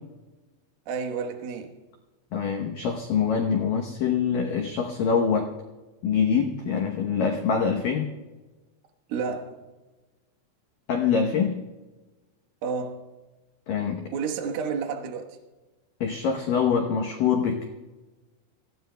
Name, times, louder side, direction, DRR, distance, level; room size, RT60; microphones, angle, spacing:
voice 1, 0.9-1.8 9.1-9.6 12.6-13.0 14.1-15.4, right 5 dB, 65° right, 2.7 m, -30 dB
voice 2, 2.3-5.5 6.0-8.1 10.9-11.6 13.7-14.0 16.0-17.6, left 6 dB, 80° left, 2.0 m, -24 dB
26.5 x 16.5 x 2.3 m
omnidirectional pair, 5.4 m